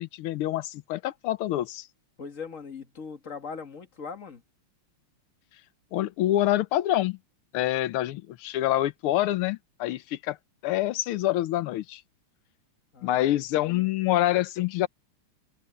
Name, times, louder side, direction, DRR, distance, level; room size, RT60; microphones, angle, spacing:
voice 1, 0.0-1.9 5.9-7.2 7.5-10.4 10.6-12.0 13.0-14.9, left 14 dB, 85° left, 1.6 m, -26 dB
voice 2, 2.2-4.4 12.9-13.2 13.6-13.9, left 5 dB, 40° left, 2.1 m, -40 dB
omnidirectional pair, 2.3 m